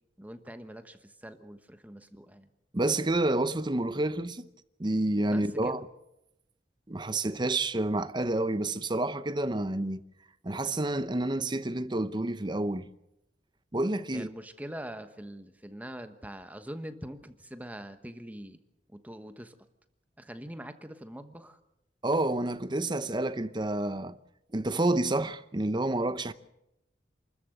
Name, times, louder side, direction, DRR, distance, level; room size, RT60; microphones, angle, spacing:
voice 1, 0.2-2.5 5.3-5.8 14.1-18.6 18.9-19.6 20.2-21.6, equal, 10° right, 1.2 m, -43 dB
voice 2, 2.7-4.4 4.8-5.8 6.9-10.0 10.4-12.9 13.7-14.3 22.0-24.2 24.5-26.3, right 2 dB, 25° right, 0.8 m, -29 dB
28.0 x 13.5 x 7.9 m
head